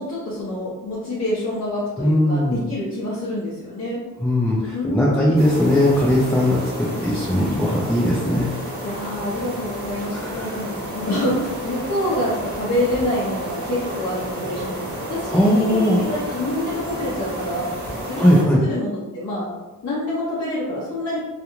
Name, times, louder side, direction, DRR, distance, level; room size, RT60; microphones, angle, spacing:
voice 1, 0.0-4.0 4.7-5.5 8.8-17.7 18.0-19.5 19.8-21.3, left 1 dB, 55° left, -7 dB, 0.6 m, -27 dB
voice 2, 2.0-2.6 4.2-8.5 10.1-10.5 15.3-16.0 18.2-18.6, equal, 5° left, -7 dB, 0.4 m, -19 dB
sound 1, 5.4-18.4, equal, 30° right, 0.8 m, -31 dB
2.4 x 2.2 x 2.9 m, 1.2 s
wide cardioid pair, 115°, 33 cm